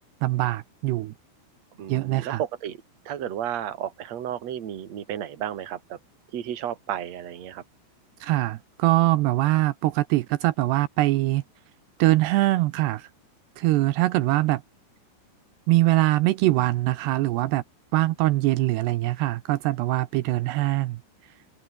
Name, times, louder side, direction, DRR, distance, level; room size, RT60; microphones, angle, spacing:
voice 1, 0.2-1.1 1.9-2.4 8.2-11.4 12.0-13.1 13.6-14.6 15.7-17.6 17.9-21.0, right 17 dB, 90° right, 2.3 m, -23 dB
voice 2, 1.8-2.8 3.0-6.0 6.3-7.6, right 10 dB, 45° right, 2.5 m, -32 dB
omnidirectional pair, 6.0 m